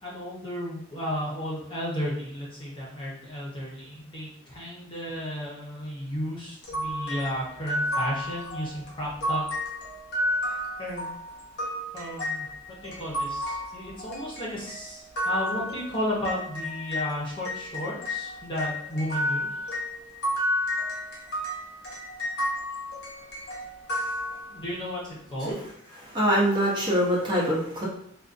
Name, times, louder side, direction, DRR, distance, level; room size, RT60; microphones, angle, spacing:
voice 1, 0.0-9.4 10.8-11.1 11.9-19.5 24.5-25.6, equal, 25° left, -5 dB, 0.8 m, -33 dB
sound 1, 6.6-17.1 17.4-24.8, left 1 dB, 55° left, 0.8 m, -32 dB
voice 2, 26.0-27.9, equal, 25° right, -6 dB, 0.7 m, -24 dB
2.4 x 2.4 x 2.5 m, 0.71 s
head